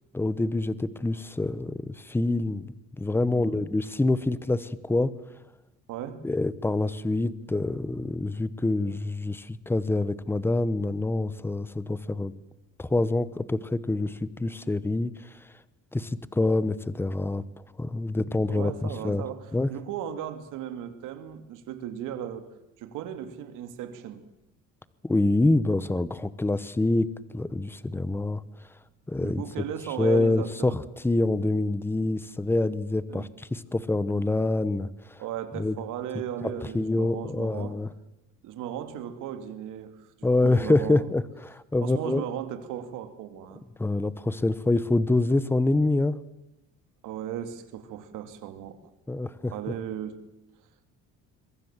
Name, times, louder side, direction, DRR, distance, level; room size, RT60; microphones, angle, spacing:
voice 1, 0.1-5.1 6.2-12.3 12.8-15.1 15.9-17.4 17.8-19.2 19.5-19.7 25.0-28.4 29.1-29.4 30.0-35.2 35.6-35.8 36.4-37.9 40.2-42.2 43.8-46.2 49.1-49.5, left 2 dB, 5° left, 16 dB, 0.9 m, -26 dB
voice 2, 3.3-3.6 5.9-6.2 18.5-22.5 22.8-24.2 29.2-30.8 33.1-33.3 35.2-37.8 38.4-41.1 41.8-43.6 47.0-48.8 49.5-50.2, right 10 dB, 85° right, 9 dB, 2.6 m, -36 dB
26.0 x 23.5 x 7.4 m, 0.93 s
cardioid pair, 145°, 31 cm